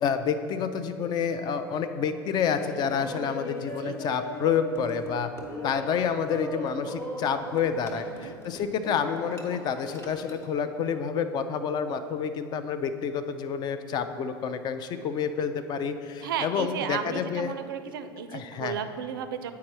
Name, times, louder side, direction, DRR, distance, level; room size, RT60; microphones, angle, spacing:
voice 1, 0.0-5.3 5.6-17.5 18.3-18.8, left 7 dB, 35° left, 10 dB, 0.4 m, -29 dB
Laughter, 2.4-10.5, equal, 20° left, 0.9 m, -39 dB
voice 2, 3.8-4.2 7.9-8.3 16.2-19.5, right 8 dB, 65° right, 10 dB, 0.4 m, -34 dB
8.3 x 4.6 x 3.0 m, 2.3 s
figure-of-eight pair, 75°, 12 cm